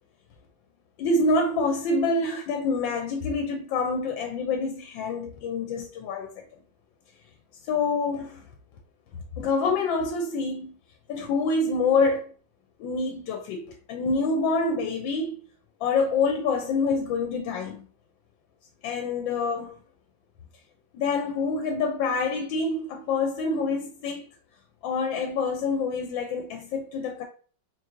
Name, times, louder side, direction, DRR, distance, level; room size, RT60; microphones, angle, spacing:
voice 1, 1.0-6.3 7.7-8.4 9.4-10.7 11.1-12.3 12.8-15.4 15.8-17.8 18.8-19.7 20.9-24.3 24.8-27.2, left 3 dB, 85° left, 1.3 m, -26 dB
4.0 x 3.1 x 2.4 m
omnidirectional pair, 2.0 m